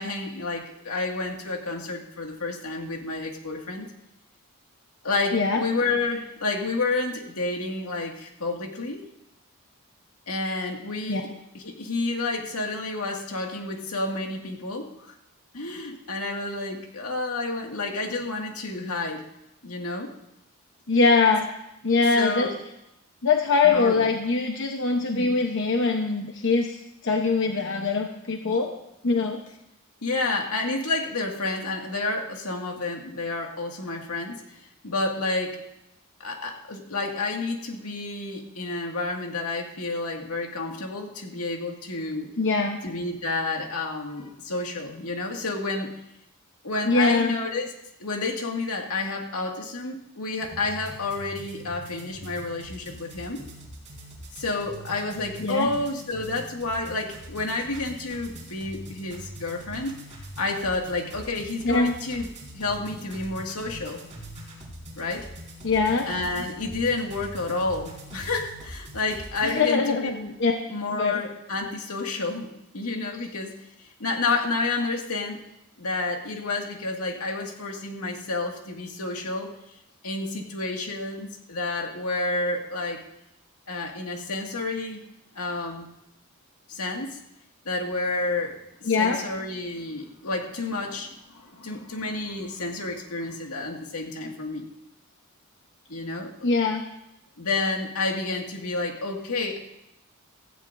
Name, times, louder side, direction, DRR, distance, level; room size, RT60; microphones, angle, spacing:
voice 1, 0.0-3.9 5.0-9.0 10.3-11.3 11.5-15.1 15.5-19.2 19.6-20.1 22.1-22.6 23.6-24.1 25.1-25.3 30.0-35.6 36.2-42.3 42.8-45.9 46.6-47.7 48.0-53.4 54.3-60.0 60.4-62.3 62.5-64.1 65.0-65.3 66.1-70.3 70.7-75.4 75.8-79.5 80.0-83.0 83.7-85.0 85.4-85.9 86.7-87.2 87.7-94.7 95.9-96.3 97.4-99.6, left 3 dB, 90° left, 1 dB, 2.0 m, -30 dB
voice 2, 5.3-5.6 11.1-11.2 20.9-21.5 21.8-22.5 23.2-28.7 29.0-29.4 42.4-42.8 46.8-47.4 55.4-55.7 61.6-61.9 65.6-66.1 69.4-70.1 70.4-70.5 71.0-71.2 88.9-89.2 96.4-96.8, left 4 dB, 55° left, 2 dB, 0.9 m, -22 dB
sound 1, 50.4-69.6, right 1 dB, 30° right, 4.2 m, -43 dB
16.0 x 14.5 x 2.6 m, 0.84 s
head